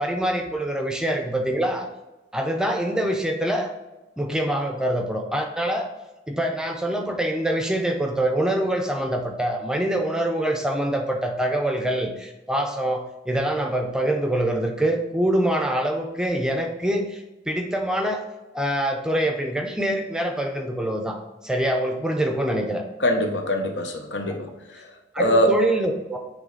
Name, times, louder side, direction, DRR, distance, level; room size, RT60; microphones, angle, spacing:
voice 1, 0.0-1.9 2.3-3.7 4.2-5.9 6.3-18.2 18.5-21.2 21.4-22.8 25.1-26.2, right 1 dB, 5° right, 3 dB, 0.5 m, -25 dB
voice 2, 23.0-24.9 25.2-25.6, equal, 75° left, 4 dB, 0.9 m, -23 dB
8.1 x 3.1 x 4.0 m, 1.1 s
head